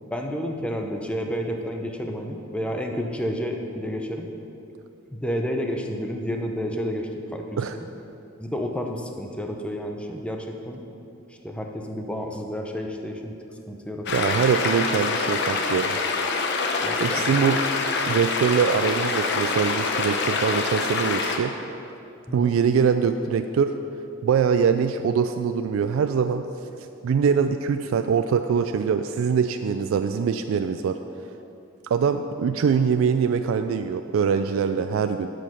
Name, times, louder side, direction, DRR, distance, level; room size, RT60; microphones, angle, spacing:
voice 1, 0.1-4.3 5.1-7.6 8.4-10.8 11.4-13.3 13.7-14.3 16.8-17.2 22.3-22.5, equal, 5° left, 2 dB, 0.6 m, -30 dB
sound 1, 14.1-21.4, left 4 dB, 55° left, 0.8 m, -25 dB
voice 2, 14.1-16.0 17.0-17.6 18.1-21.5 22.3-23.7 24.2-26.4 27.0-31.0 31.8-35.3, right 6 dB, 75° right, 8 dB, 0.3 m, -23 dB
11.5 x 5.1 x 5.6 m, 2.8 s
head